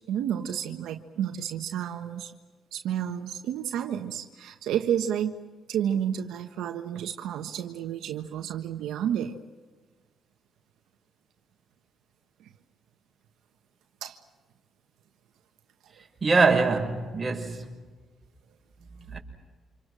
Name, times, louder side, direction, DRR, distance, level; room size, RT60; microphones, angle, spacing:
voice 1, 0.1-2.3 2.7-5.3 5.7-9.4 12.4-12.5 14.0-14.2 16.0-16.1, right 9 dB, 85° right, 1.4 m, -31 dB
voice 2, 16.2-17.6 19.1-19.2, right 4 dB, 25° right, 6.1 m, -23 dB
29.0 x 27.0 x 6.4 m
cardioid pair, 90°, 0 cm